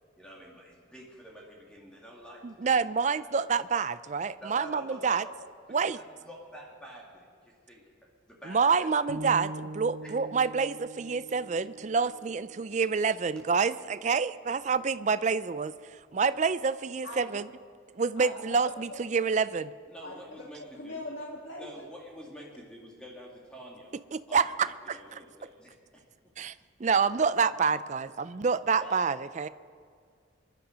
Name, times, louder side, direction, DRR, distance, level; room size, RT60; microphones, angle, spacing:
voice 1, 0.2-2.7 3.0-3.2 4.4-5.3 5.8-7.8 8.3-8.9 10.0-10.2 19.9-21.0 21.6-23.9 24.3-25.7 28.8-29.0, right 1 dB, 5° left, -3 dB, 2.1 m, -47 dB
voice 2, 2.4-5.3 5.7-6.0 8.5-17.5 18.0-19.7 24.1-25.0 26.4-26.5 26.8-29.5, right 5 dB, 35° right, 15 dB, 0.4 m, -27 dB
sound 1, 9.1-13.2, right 1 dB, 80° right, 1.4 m, -43 dB
voice 3, 17.0-17.4 18.2-19.0 20.0-20.1 20.6-21.7, left 1 dB, 75° left, -1 dB, 1.7 m, -41 dB
24.5 x 11.5 x 5.1 m, 2.2 s
head